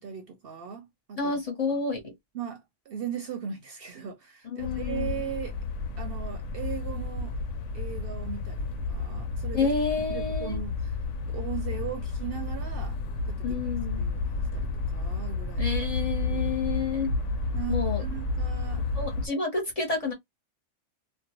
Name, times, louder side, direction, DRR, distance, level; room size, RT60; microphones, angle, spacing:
voice 1, 0.0-1.4 1.7-1.8 2.3-5.6 6.0-7.4 7.7-11.0 11.3-13.0 13.3-13.6 14.0-15.7 16.2-16.6 17.5-18.8, right 8 dB, 60° right, 0.7 m, -38 dB
voice 2, 1.2-2.1 4.5-5.2 9.5-10.6 13.4-14.1 15.6-17.1 17.7-18.0 18.9-20.1, left 4 dB, 35° left, 0.8 m, -29 dB
sound 1, 4.6-19.3, left 3 dB, 80° left, 0.9 m, -31 dB
2.4 x 2.2 x 2.9 m
omnidirectional pair, 1.2 m